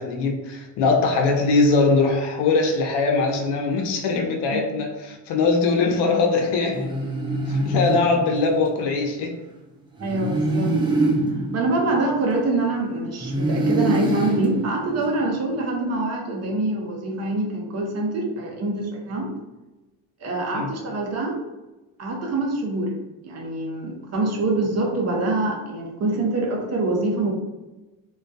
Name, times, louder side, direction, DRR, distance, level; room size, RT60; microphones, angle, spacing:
voice 1, 0.0-6.9 7.5-9.3 20.5-20.7, left 3 dB, 65° left, 2 dB, 0.6 m, -21 dB
sound 1, 6.7-8.8 10.0-12.7 13.2-15.5, right 1 dB, 15° right, 0.3 m, -25 dB
voice 2, 10.0-10.7 11.5-19.3 20.2-21.4 22.0-22.9 23.2-27.3, right 2 dB, 35° right, 0 dB, 0.7 m, -25 dB
2.2 x 2.2 x 2.5 m, 1.1 s
supercardioid pair, 85°, 45 cm